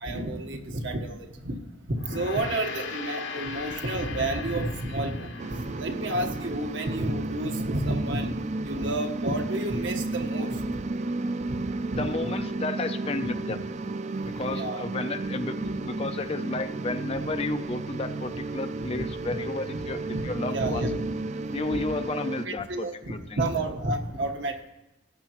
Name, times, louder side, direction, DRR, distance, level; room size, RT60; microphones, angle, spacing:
voice 1, 0.0-1.6 1.9-10.8 11.6-12.1 14.2-14.8 15.6-15.7 18.8-18.9 19.3-19.4 20.1-21.0 21.7-21.8 22.4-24.7, right 1 dB, 70° right, 4 dB, 1.2 m, -31 dB
Gong, 1.9-6.5, left 5 dB, 70° left, 1.2 m, -39 dB
sound 1, 5.4-22.5, right 2 dB, 35° right, 0.3 m, -33 dB
voice 2, 12.0-13.7 14.2-20.9 21.5-23.4, left 3 dB, 30° left, 9 dB, 0.4 m, -32 dB
16.5 x 9.6 x 3.0 m, 0.97 s
head